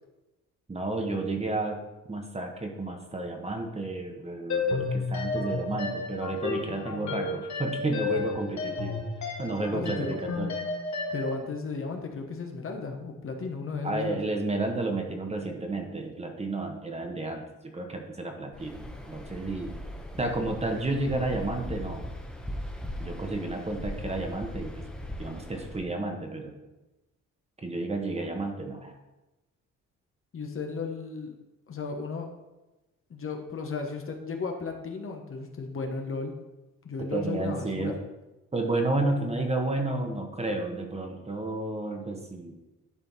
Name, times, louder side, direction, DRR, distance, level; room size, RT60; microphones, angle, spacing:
voice 1, 0.7-1.8 2.1-9.0 9.4-10.6 13.8-19.7 20.2-22.1 23.0-24.8 25.2-26.5 27.6-28.9 37.1-38.0 38.5-42.6, right 2 dB, 20° right, 3 dB, 1.3 m, -31 dB
sound 1, 4.5-11.4, left 4 dB, 65° left, 1.7 m, -32 dB
voice 2, 9.7-10.2 11.1-14.2 30.3-31.3 31.7-32.3 33.1-36.3 36.8-37.9, left 4 dB, 45° left, 3 dB, 1.3 m, -34 dB
Waves surf, 18.5-25.8, left 1 dB, 5° left, 1.1 m, -39 dB
11.0 x 4.4 x 4.2 m, 1.0 s
cardioid pair, 90°, 30 cm